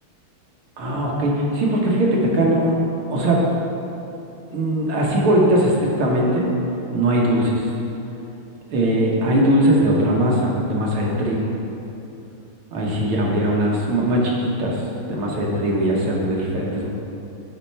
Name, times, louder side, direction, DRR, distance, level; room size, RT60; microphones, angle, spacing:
voice 1, 0.8-2.8 3.1-3.4 4.5-6.5 6.9-7.7 8.7-11.5 12.7-14.8 15.1-16.9, right 1 dB, 80° right, -3 dB, 2.0 m, -20 dB
8.8 x 4.3 x 4.3 m, 2.8 s
omnidirectional pair, 2.4 m